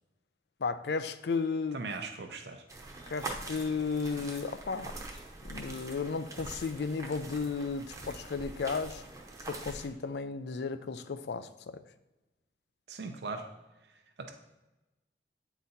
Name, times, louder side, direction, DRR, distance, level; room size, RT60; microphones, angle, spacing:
voice 1, 0.6-1.8 3.1-5.0 5.4-9.0 9.5-11.8, left 4 dB, 70° left, 12 dB, 0.4 m, -34 dB
voice 2, 1.7-2.6 12.9-13.5 14.2-14.3, right 3 dB, 75° right, 4 dB, 0.6 m, -39 dB
sound 1, 2.7-9.9, right 2 dB, 20° right, 0.8 m, -44 dB
8.6 x 4.1 x 4.1 m, 1.0 s
head